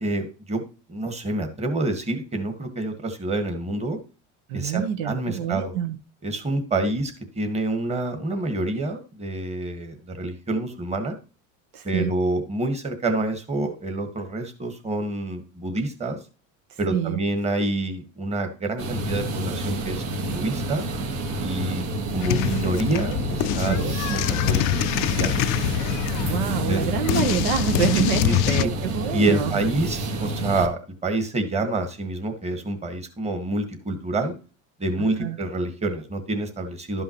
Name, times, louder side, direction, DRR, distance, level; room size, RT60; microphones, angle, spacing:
voice 1, 0.0-4.0 4.5-5.7 6.2-11.1 11.8-16.2 16.8-20.8 21.4-25.4 26.2-26.8 28.2-28.7 29.1-34.3 34.8-37.0, right 2 dB, 15° right, 7 dB, 1.5 m, -27 dB
voice 2, 4.5-6.0 11.7-12.1 16.7-17.2 23.6-24.2 26.2-29.6 35.0-35.4, right 9 dB, 75° right, 8 dB, 1.0 m, -27 dB
sound 1, 18.8-30.7, right 1 dB, 55° right, 1.4 m, -29 dB
sound 2, 22.2-28.7, left 14 dB, 60° left, 0.5 m, -25 dB
12.0 x 5.6 x 2.9 m, 0.34 s
supercardioid pair, 125°, 37 cm